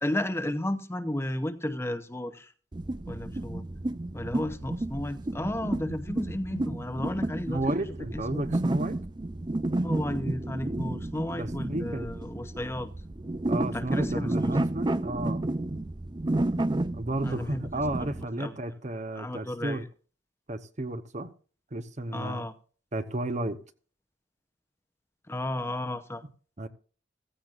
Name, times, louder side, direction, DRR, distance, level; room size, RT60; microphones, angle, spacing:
voice 1, 0.0-2.5 3.1-3.6 4.1-7.6 8.1-8.4 9.8-12.9 13.7-14.6 17.2-17.7 18.4-18.5 19.1-19.9 22.1-22.5 25.3-26.2, left 1 dB, 15° left, 0.8 m, -33 dB
sound 1, 2.7-18.2, right 2 dB, 25° right, 0.5 m, -31 dB
voice 2, 7.5-9.0 11.3-12.1 13.5-15.4 16.9-19.8 20.5-21.3 21.7-22.5 22.9-23.6 26.6-26.7, right 1 dB, 40° right, 1.0 m, -33 dB
15.5 x 15.0 x 2.5 m
head